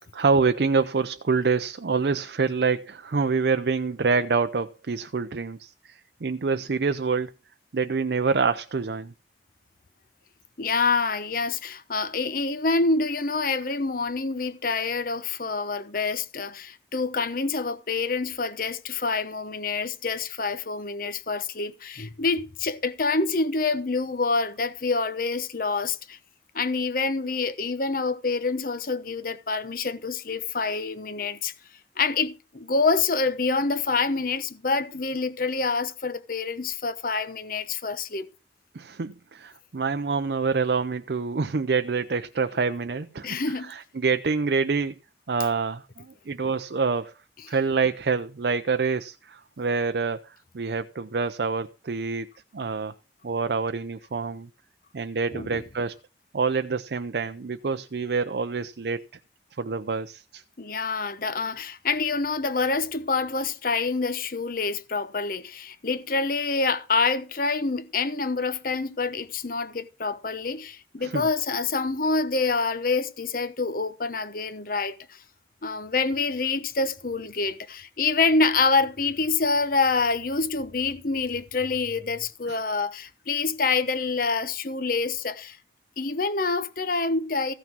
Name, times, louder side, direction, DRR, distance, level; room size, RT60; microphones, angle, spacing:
voice 1, 0.1-7.3 7.7-9.1 38.7-44.9 45.3-47.1 47.5-50.3 50.5-52.3 52.5-52.9 53.2-54.5 54.9-56.0 56.3-59.0 59.6-60.4 71.0-71.3 82.5-82.6, right 4 dB, 65° right, 0.5 m, -26 dB
voice 2, 10.6-26.2 26.5-31.5 32.0-38.3 43.2-43.7 55.3-55.6 60.6-74.9 75.6-85.6 86.0-87.5, left 4 dB, 50° left, 0.9 m, -26 dB
15.0 x 5.9 x 6.0 m
head